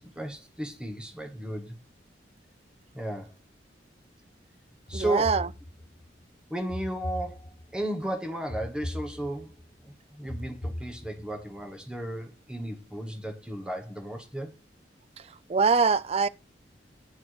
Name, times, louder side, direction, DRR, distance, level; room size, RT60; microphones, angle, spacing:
voice 1, 0.0-1.8 2.9-3.3 4.9-5.4 6.5-9.5 10.1-14.5, right 1 dB, 5° right, 1.3 m, -34 dB
sound 1, 4.9-6.1 6.7-7.8 8.5-9.6 10.3-11.4, left 1 dB, 55° left, 1.4 m, -38 dB
voice 2, 4.9-5.5 15.5-16.3, right 5 dB, 35° right, 0.4 m, -23 dB
9.5 x 4.7 x 4.7 m
head